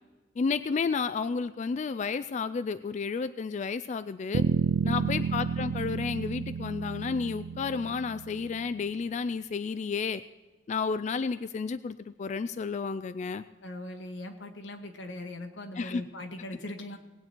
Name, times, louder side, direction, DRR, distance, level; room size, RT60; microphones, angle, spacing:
voice 1, 0.4-4.4 4.8-10.2 10.7-13.4 15.8-16.0, left 5 dB, 40° left, 12 dB, 0.3 m, -31 dB
sound 1, 4.3-8.7, right 6 dB, 75° right, 0.4 m, -31 dB
voice 2, 4.9-5.4 13.6-17.0, left 1 dB, 90° left, 5 dB, 1.6 m, -40 dB
19.5 x 8.9 x 4.4 m, 1.2 s
head